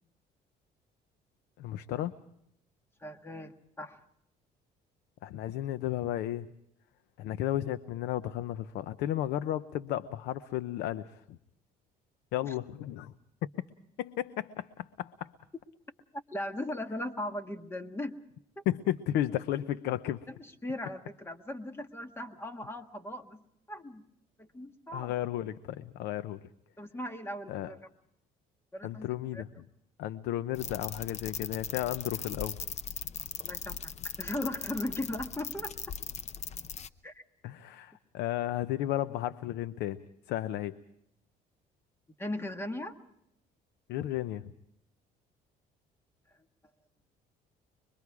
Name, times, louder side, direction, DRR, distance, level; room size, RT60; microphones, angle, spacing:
voice 1, 1.6-2.1 5.2-6.5 7.2-11.4 12.3-13.1 14.0-15.3 18.7-20.3 24.9-26.4 27.5-27.7 28.8-29.5 30.0-32.6 37.4-40.0 40.3-40.8 43.9-44.5, left 13 dB, 85° left, 13 dB, 0.7 m, -33 dB
voice 2, 3.0-4.0 12.4-12.5 16.3-18.1 18.6-18.7 20.3-23.4 23.7-24.0 24.4-25.1 26.8-27.8 28.7-29.1 29.3-29.4 33.4-35.7 37.0-37.2 42.2-43.0, left 1 dB, 15° left, 7 dB, 1.5 m, -38 dB
sound 1, 30.5-36.9, left 7 dB, 40° left, 0.7 m, -39 dB
25.0 x 22.5 x 4.8 m, 0.77 s
cardioid pair, 110°, 17 cm